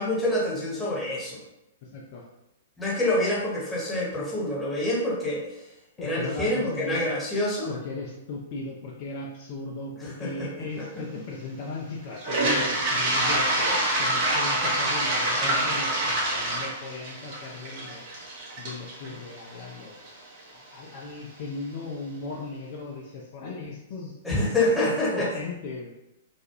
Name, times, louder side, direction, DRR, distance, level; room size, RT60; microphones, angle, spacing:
voice 1, 0.0-1.4 2.8-5.7 6.0-7.7 10.0-10.5 10.8-10.9 15.4-15.7 24.2-25.3, left 1 dB, 5° left, -7 dB, 1.0 m, -27 dB
voice 2, 1.8-2.2 6.0-7.1 7.7-18.1 18.6-20.1 20.5-24.1 24.8-25.9, left 3 dB, 45° left, -2 dB, 0.4 m, -37 dB
Toilet flush, 12.2-20.1, right 1 dB, 40° right, 0.7 m, -26 dB
2.3 x 2.2 x 2.9 m, 0.89 s
figure-of-eight pair, 110°, 0 cm